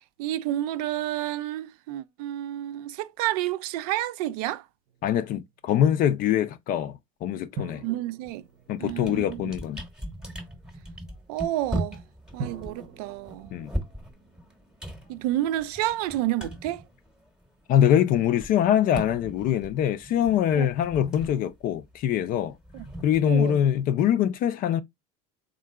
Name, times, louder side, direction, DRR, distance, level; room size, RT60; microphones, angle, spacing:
voice 1, 0.2-4.6 7.8-8.4 8.8-9.5 11.3-12.0 12.3-13.5 15.1-16.8 20.6-20.7 22.7-22.8 23.2-23.6, right 14 dB, 80° right, 0.4 m, -30 dB
sound 1, 4.9-5.8 7.6-9.9 12.4-15.4, right 4 dB, 50° right, 0.8 m, -43 dB
voice 2, 5.0-6.9 7.2-7.8 8.7-9.8 13.5-13.7 17.7-22.5 23.0-24.8, left 10 dB, 45° left, 0.4 m, -23 dB
sound 2, 8.2-8.4 8.8-17.6 17.9-23.8, right 1 dB, 5° right, 0.9 m, -39 dB
3.7 x 3.7 x 2.2 m
supercardioid pair, 115°, 19 cm